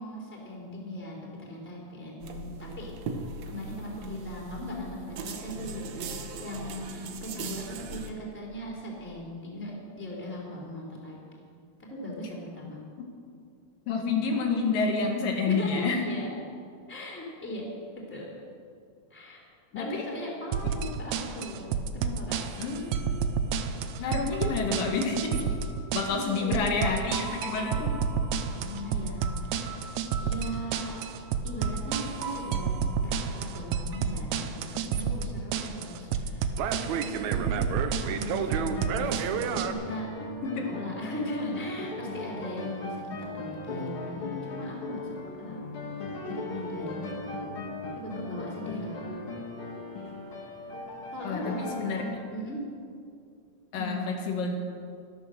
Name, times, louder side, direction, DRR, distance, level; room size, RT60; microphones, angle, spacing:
voice 1, 0.0-2.9 3.5-11.2 11.9-12.8 15.5-16.4 16.9-17.7 17.9-18.3 19.1-19.4 19.7-22.4 26.1-27.1 28.5-29.6 30.2-31.0 31.4-32.7 33.0-40.1 40.5-43.3 43.6-45.6 46.2-47.1 47.9-49.0 51.1-51.7 52.3-52.6 53.7-54.2, left 1 dB, 5° left, -3 dB, 2.6 m, -38 dB
sound 1, 2.2-8.1, right 3 dB, 65° right, 1.8 m, -39 dB
voice 2, 13.9-16.1 19.7-20.1 20.6-20.8 22.6-23.2 24.0-25.4 25.9-27.9 40.4-40.6 51.2-52.2 53.7-54.6, left 4 dB, 75° left, 2 dB, 2.9 m, -29 dB
sound 2, 20.5-39.7, right 6 dB, 85° right, 1.6 m, -30 dB
sound 3, 38.5-52.2, left 2 dB, 50° left, 1.8 m, -38 dB
13.0 x 12.5 x 6.4 m, 2.3 s
omnidirectional pair, 4.1 m